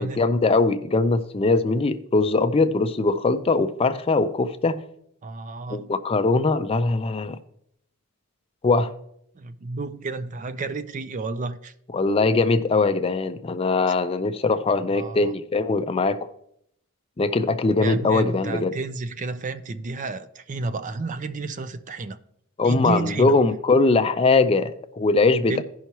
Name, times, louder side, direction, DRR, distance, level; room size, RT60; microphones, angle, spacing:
voice 1, 0.0-4.8 5.7-7.4 8.6-8.9 11.9-16.2 17.2-18.7 22.6-25.6, left 3 dB, 25° left, 0.4 m, -21 dB
voice 2, 5.2-5.9 9.4-11.7 14.9-15.3 17.8-22.2 22.6-23.3 25.5-25.6, right 3 dB, 35° right, 0.4 m, -31 dB
16.0 x 5.6 x 3.0 m
head